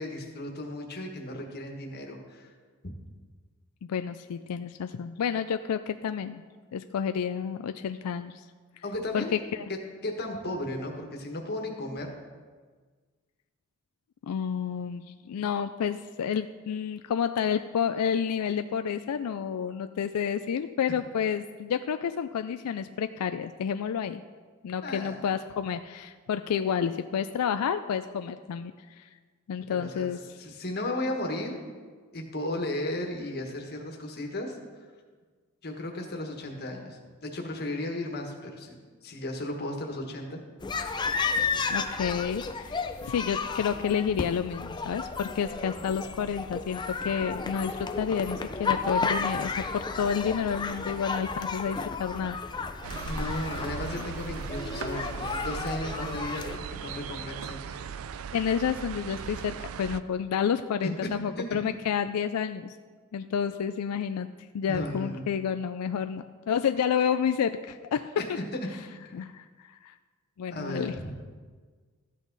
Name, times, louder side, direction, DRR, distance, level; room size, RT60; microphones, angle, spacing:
voice 1, 0.0-2.5 8.8-9.4 10.0-12.1 24.8-25.2 29.7-30.1 30.4-31.6 32.1-34.6 35.6-40.4 53.0-57.9 60.8-61.1 61.4-61.5 64.7-65.3 68.2-68.4 69.1-69.3 70.5-70.9, left 1 dB, 45° left, 2 dB, 1.4 m, -35 dB
voice 2, 3.9-6.4 6.7-8.4 9.1-9.2 9.5-9.7 14.2-24.2 24.6-29.1 29.5-30.2 41.7-52.4 54.0-54.1 58.3-62.8 63.1-64.3 64.5-68.4 69.1-69.9 70.4-70.9, left 7 dB, 90° left, 10 dB, 0.4 m, -30 dB
sound 1, 40.6-56.6, left 4 dB, 20° left, 0.4 m, -33 dB
sound 2, 52.8-60.0, right 7 dB, 65° right, 0.4 m, -38 dB
13.5 x 8.3 x 4.0 m, 1.5 s
head